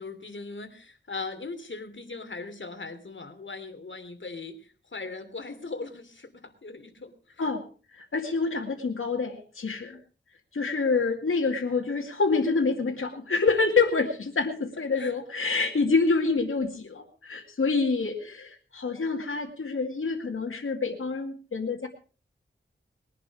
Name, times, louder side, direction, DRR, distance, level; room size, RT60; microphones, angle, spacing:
voice 1, 0.0-7.4 15.0-15.1, left 3 dB, 65° left, 7 dB, 3.0 m, -39 dB
voice 2, 7.9-10.0 10.5-21.9, left 4 dB, 85° left, 1 dB, 2.3 m, -27 dB
21.5 x 11.0 x 4.9 m, 0.39 s
wide cardioid pair, 50°, 21 cm